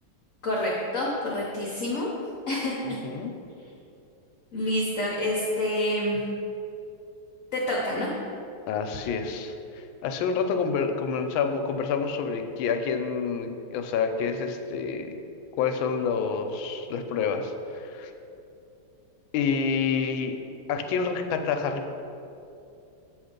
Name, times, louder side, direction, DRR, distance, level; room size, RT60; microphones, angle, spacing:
voice 1, 0.4-2.1 2.5-3.0 4.5-6.2 7.5-8.1, left 1 dB, 55° left, -4 dB, 0.9 m, -27 dB
voice 2, 8.7-15.1 15.6-18.1 19.3-20.4 20.7-21.9, left 5 dB, 85° left, 6 dB, 1.4 m, -28 dB
7.6 x 3.1 x 5.1 m, 2.7 s
omnidirectional pair, 2.1 m